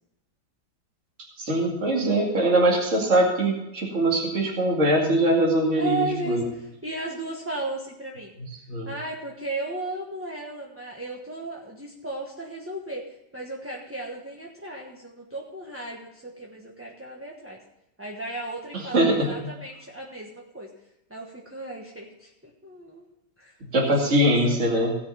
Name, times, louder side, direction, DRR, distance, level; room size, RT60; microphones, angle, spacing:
voice 1, 1.4-6.4 8.7-8.9 18.7-19.3 23.7-25.0, right 1 dB, 40° right, -2 dB, 2.5 m, -22 dB
voice 2, 5.8-8.3 8.8-17.6 18.0-20.7 21.1-23.1 23.4-23.6 23.9-24.0 24.2-24.6, right 1 dB, 10° right, -2 dB, 1.1 m, -35 dB
17.0 x 6.2 x 5.6 m, 0.90 s
omnidirectional pair, 1.9 m